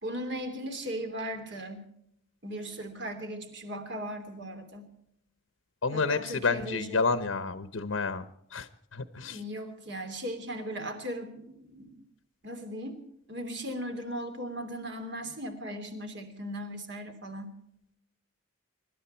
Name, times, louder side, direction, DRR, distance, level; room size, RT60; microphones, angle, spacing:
voice 1, 0.0-1.8 2.4-4.9 5.9-7.3 9.2-11.9 12.4-13.0 13.3-17.5, equal, 55° right, 6 dB, 3.1 m, -38 dB
voice 2, 5.8-8.2 8.5-9.4, left 4 dB, 75° left, 12 dB, 0.9 m, -30 dB
25.5 x 12.5 x 4.5 m, 0.75 s
head